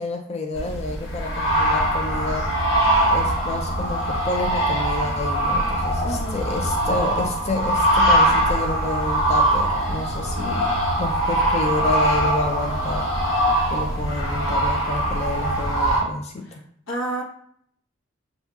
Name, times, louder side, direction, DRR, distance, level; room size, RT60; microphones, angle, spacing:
voice 1, 0.0-2.5 3.1-13.1 13.7-16.6, left 2 dB, 30° left, 3 dB, 0.4 m, -29 dB
sound 1, 0.6-16.0, right 1 dB, 70° left, 1.5 m, -22 dB
voice 2, 2.8-3.2 6.0-6.5 16.9-17.2, right 1 dB, 90° left, -2 dB, 1.0 m, -31 dB
6.5 x 2.6 x 2.3 m, 0.67 s
head